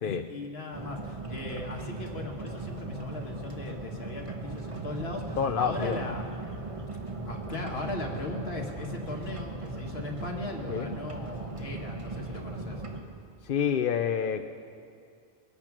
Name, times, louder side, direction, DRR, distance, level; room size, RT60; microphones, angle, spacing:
voice 1, 0.0-6.2 7.2-12.8, left 2 dB, 80° left, 1 dB, 1.8 m, -38 dB
sound 1, 0.7-13.0, right 2 dB, 35° right, 1.2 m, -38 dB
voice 2, 5.4-6.0 10.7-10.9 13.4-14.5, left 7 dB, 65° left, 6 dB, 0.8 m, -28 dB
22.5 x 8.7 x 6.0 m, 2.3 s
omnidirectional pair, 1.0 m